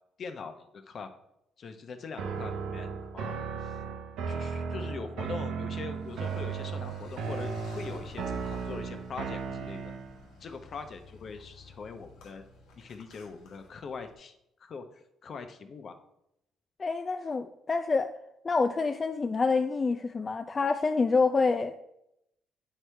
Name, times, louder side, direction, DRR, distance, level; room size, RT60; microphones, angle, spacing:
voice 1, 0.2-1.1 1.6-3.8 4.3-9.8 10.4-12.4 12.8-14.3 14.6-16.0, left 5 dB, 55° left, 7 dB, 0.8 m, -42 dB
sound 1, 2.2-10.2, right 5 dB, 80° right, 0.8 m, -35 dB
Car, 5.9-14.1, left 3 dB, 85° left, 1.3 m, -50 dB
voice 2, 16.8-18.1 18.4-21.8, left 4 dB, 35° left, 8 dB, 0.4 m, -27 dB
8.6 x 4.7 x 3.4 m, 0.82 s
cardioid pair, 80°, 0 cm